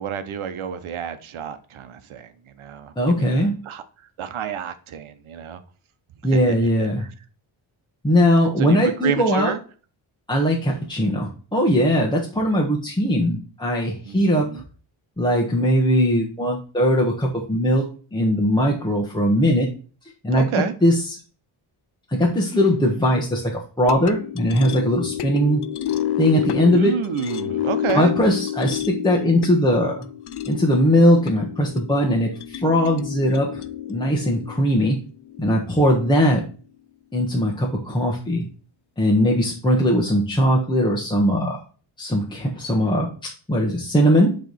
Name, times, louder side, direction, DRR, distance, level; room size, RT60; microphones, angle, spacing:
voice 1, 0.0-2.3 2.6-3.8 4.2-5.6 6.3-7.1 8.6-9.6 14.1-14.6 20.3-20.7 26.7-28.1, right 8 dB, 85° right, 1.0 m, -29 dB
voice 2, 3.0-3.6 6.2-7.0 8.0-9.5 10.3-14.5 15.2-17.8 18.1-19.7 20.2-21.0 22.1-25.6 26.2-26.9 27.9-30.0 30.5-33.6 33.9-35.0 35.4-36.4 37.1-38.4 39.0-41.6 42.0-44.4, equal, 10° left, 1.3 m, -20 dB
sound 1, 23.8-36.2, left 11 dB, 55° left, 0.6 m, -30 dB
10.0 x 3.4 x 4.2 m
wide cardioid pair, 120°, 48 cm